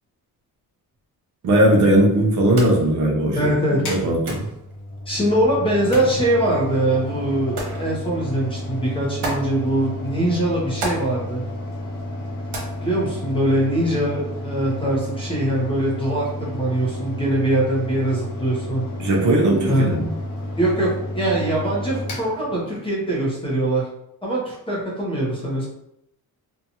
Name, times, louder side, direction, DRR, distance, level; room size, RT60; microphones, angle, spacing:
voice 1, 1.4-3.5 3.9-4.4 19.0-20.1, right 1 dB, 50° right, -1 dB, 0.7 m, -18 dB
sound 1, 2.4-13.9, right 2 dB, 80° right, 1.0 m, -37 dB
voice 2, 3.3-3.8 5.1-11.4 12.8-18.9 19.7-19.9 20.6-23.9 24.2-25.7, right 1 dB, 15° left, -5 dB, 0.6 m, -22 dB
Mechanical fan, 3.7-23.1, left 1 dB, 55° left, 0.8 m, -32 dB
2.7 x 2.3 x 2.7 m, 0.81 s
cardioid pair, 150°, 38 cm